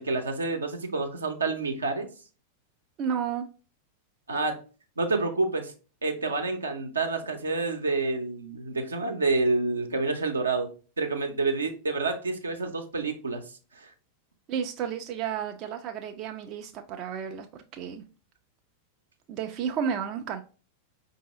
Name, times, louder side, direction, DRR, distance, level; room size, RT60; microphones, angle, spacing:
voice 1, 0.0-2.1 4.3-4.6 5.0-5.7 6.0-10.7 11.0-13.4 13.8-13.9, right 3 dB, 75° right, 0.7 m, -28 dB
voice 2, 3.0-3.4 14.5-18.0 19.3-20.4, right 7 dB, 35° right, 0.4 m, -32 dB
5.2 x 2.7 x 2.9 m
figure-of-eight pair, 90°, 0 cm